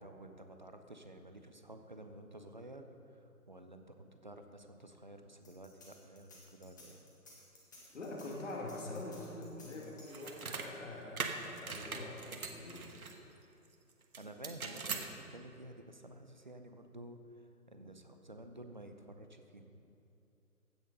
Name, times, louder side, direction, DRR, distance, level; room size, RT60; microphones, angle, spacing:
voice 1, 0.0-7.0 14.2-19.9, right 1 dB, 30° right, 6 dB, 0.5 m, -52 dB
sound 1, 5.4-10.5, left 2 dB, 15° left, 0.9 m, -58 dB
voice 2, 7.9-12.9, left 2 dB, 50° left, -1 dB, 2.3 m, -45 dB
sound 2, 10.1-10.7 11.2-13.2 14.1-15.1, right 5 dB, 65° right, 1.3 m, -41 dB
15.5 x 6.3 x 5.3 m, 2.7 s
figure-of-eight pair, 155°, 46 cm